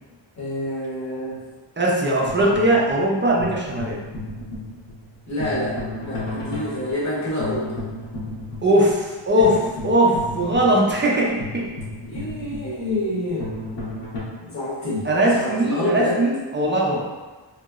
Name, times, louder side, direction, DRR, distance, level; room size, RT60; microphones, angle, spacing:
voice 1, 0.4-1.4 5.3-7.8 9.4-9.6 12.0-13.5 14.4-16.2, left 1 dB, 35° left, -6 dB, 0.9 m, -28 dB
voice 2, 1.8-4.0 8.6-11.7 15.0-17.1, right 1 dB, 30° right, -3 dB, 0.3 m, -20 dB
sound 1, 2.2-14.2, left 2 dB, 65° left, 1.0 m, -34 dB
2.9 x 2.8 x 2.3 m, 1.3 s
wide cardioid pair, 155°, 46 cm